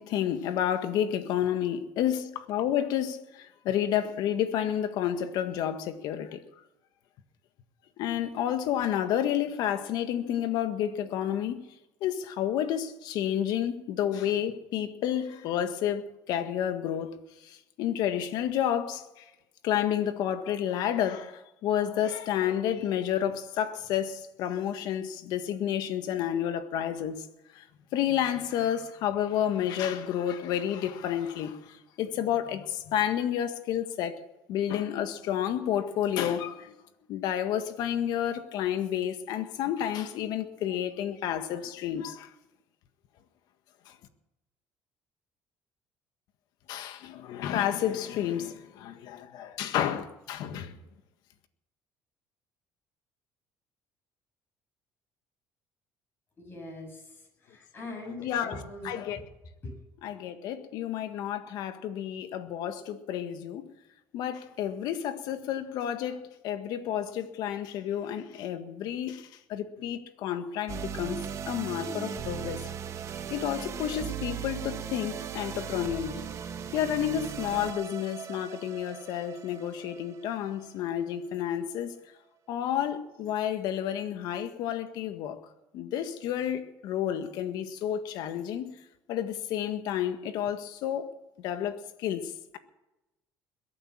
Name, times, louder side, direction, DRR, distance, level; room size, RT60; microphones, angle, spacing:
voice 1, 0.0-6.4 8.0-11.6 12.0-16.0 16.3-17.2 17.4-19.2 19.6-27.2 27.5-27.6 27.9-34.2 34.5-36.7 37.1-42.3 46.7-50.7 58.2-59.2 60.0-63.7 64.1-72.7 73.3-76.2 76.7-81.9 82.5-85.4 85.7-88.7 89.1-91.1 91.4-92.6, left 10 dB, 75° left, 1.6 m, -30 dB
voice 2, 56.4-57.0 57.5-58.9 59.6-59.7, left 2 dB, 30° left, 7.7 m, -41 dB
sound 1, 70.7-81.1, right 8 dB, 45° right, 1.3 m, -38 dB
22.0 x 8.8 x 7.4 m
cardioid pair, 120°, 7 cm